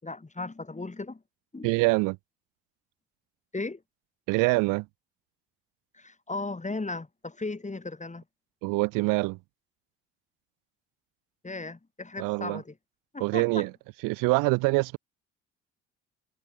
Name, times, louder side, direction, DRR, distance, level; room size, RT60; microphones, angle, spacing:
voice 1, 0.0-1.2 1.5-1.7 3.5-3.8 5.9-8.2 11.4-12.7 13.1-13.7, left 3 dB, 20° left, 6.7 m, -36 dB
voice 2, 1.6-2.2 4.3-4.9 8.6-9.4 12.2-12.6 13.2-13.7 14.0-15.0, right 26 dB, 65° right, 0.5 m, -25 dB
hypercardioid pair, 55°, 36 cm